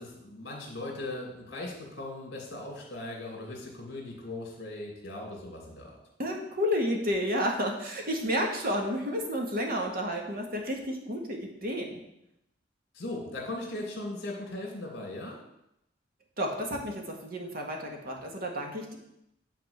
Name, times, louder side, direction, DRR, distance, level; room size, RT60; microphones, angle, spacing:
voice 1, 0.0-6.0 12.9-15.4, left 2 dB, 60° left, -1 dB, 2.5 m, -38 dB
voice 2, 6.2-12.0 16.4-19.0, equal, 55° right, 1 dB, 1.7 m, -31 dB
9.3 x 4.2 x 7.2 m, 0.82 s
head